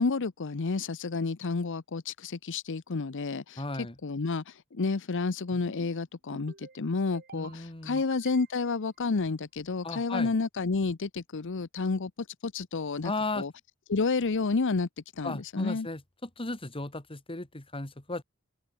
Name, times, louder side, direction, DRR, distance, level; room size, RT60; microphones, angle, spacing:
voice 1, 0.0-13.5 13.9-14.9 15.2-15.9, left 4 dB, 60° left, 0.7 m, -30 dB
voice 2, 3.6-4.0 7.3-8.0 9.8-10.3 13.0-13.5 15.2-18.2, left 2 dB, 25° left, 2.2 m, -35 dB
sound 1, 5.5-6.0 6.3-6.8 7.1-7.6 8.0-8.7, right 4 dB, 50° right, 2.2 m, -50 dB
head